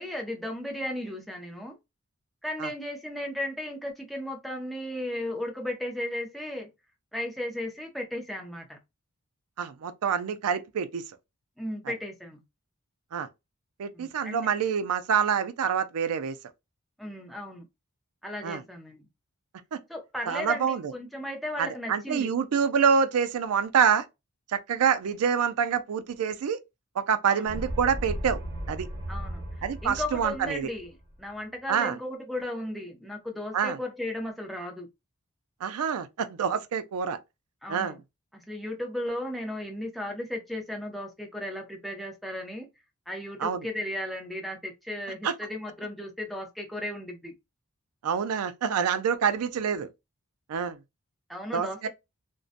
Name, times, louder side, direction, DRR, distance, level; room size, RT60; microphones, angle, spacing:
voice 1, 0.0-1.8 2.4-6.7 7.1-8.8 11.6-12.4 13.9-14.5 17.0-17.6 18.2-19.0 19.9-22.3 27.2-27.5 29.1-30.9 31.2-34.9 37.6-38.0 38.3-42.7 43.1-47.3 51.3-51.9, left 1 dB, ahead, 0.4 m, -35 dB
voice 2, 9.6-11.0 13.1-13.3 13.8-16.3 18.4-18.6 19.7-19.8 20.3-20.9 21.6-24.0 24.5-26.6 27.0-28.4 28.7-28.9 29.6-30.7 31.7-32.0 33.5-33.8 35.6-37.2 37.7-37.9 43.4-43.7 45.2-45.3 48.0-49.9 50.5-50.8 51.5-51.9, right 7 dB, 85° right, 0.4 m, -26 dB
sound 1, 27.5-31.0, equal, 45° right, 1.0 m, -36 dB
2.6 x 2.1 x 2.4 m
head